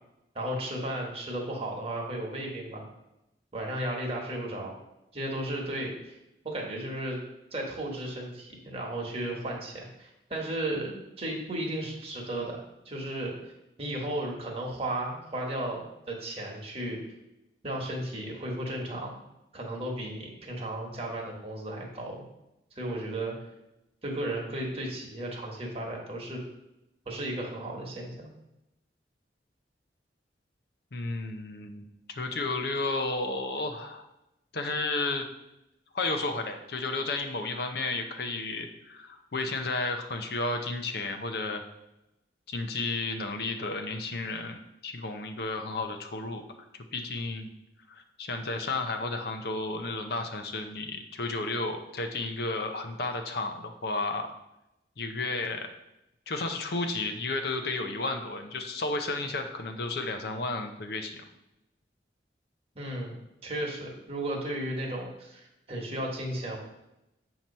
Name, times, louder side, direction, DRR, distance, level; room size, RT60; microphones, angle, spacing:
voice 1, 0.3-2.8 3.5-4.7 5.1-6.1 6.4-7.2 7.5-13.3 13.8-17.0 17.6-19.1 19.5-22.2 22.8-23.3 24.0-26.4 27.1-28.3 62.7-66.6, right 1 dB, 35° right, -1 dB, 1.3 m, -34 dB
voice 2, 30.9-34.1 34.5-35.3 35.9-41.6 42.5-46.4 46.9-47.5 47.9-54.3 55.0-55.7 56.3-61.2, left 3 dB, 60° left, 5 dB, 0.6 m, -32 dB
7.4 x 2.9 x 5.3 m, 0.90 s
head